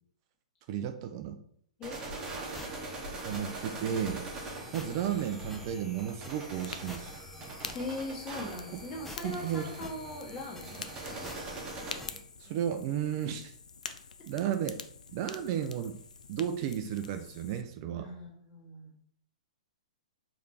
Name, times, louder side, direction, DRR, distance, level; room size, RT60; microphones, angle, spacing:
voice 1, 0.7-1.4 3.2-4.3 4.7-7.2 8.7-8.8 9.2-9.9 10.8-10.9 12.4-13.5 14.3-14.8 15.1-16.0 16.3-18.1, right 9 dB, 40° right, 7 dB, 0.4 m, -33 dB
voice 2, 1.8-2.9 7.7-11.2 18.0-18.9, left 2 dB, 30° left, -2 dB, 1.6 m, -41 dB
sound 1, 1.8-12.0, right 2 dB, 20° right, 1.1 m, -43 dB
sound 2, 2.2-12.2, left 1 dB, 5° left, 0.6 m, -48 dB
Fire, 6.5-17.6, left 5 dB, 85° left, 0.4 m, -47 dB
4.9 x 3.2 x 2.8 m, 0.64 s
hypercardioid pair, 120°, 4 cm